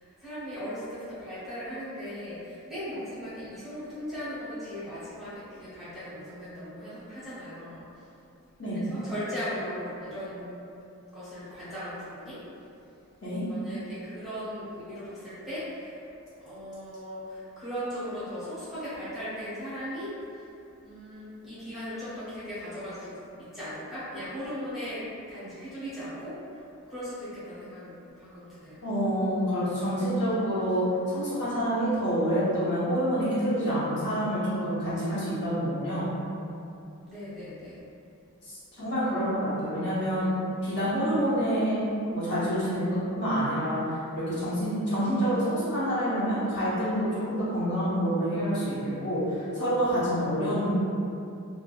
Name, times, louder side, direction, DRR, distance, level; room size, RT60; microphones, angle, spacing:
voice 1, 0.0-7.8 8.7-10.5 11.1-12.4 13.5-16.0 16.4-20.1 20.8-23.2 23.5-26.4 26.9-27.9 28.2-28.8 37.1-37.8, equal, ahead, -13 dB, 0.7 m, -38 dB
voice 2, 28.8-36.1 38.4-40.3 40.6-50.7, equal, 55° left, -11 dB, 1.0 m, -27 dB
3.3 x 2.2 x 2.3 m, 2.6 s
head